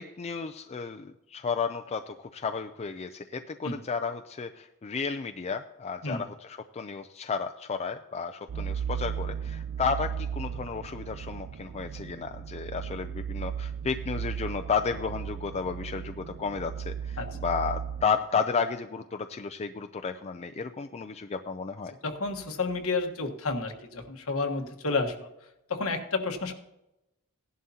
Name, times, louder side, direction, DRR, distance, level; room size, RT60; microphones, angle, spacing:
voice 1, 0.0-21.9, left 5 dB, 30° left, 6 dB, 0.4 m, -32 dB
sound 1, 8.5-18.1, right 8 dB, 45° right, 0.3 m, -36 dB
voice 2, 22.0-25.3 25.7-26.5, left 3 dB, 65° left, 5 dB, 1.3 m, -30 dB
16.5 x 11.0 x 2.8 m, 0.90 s
head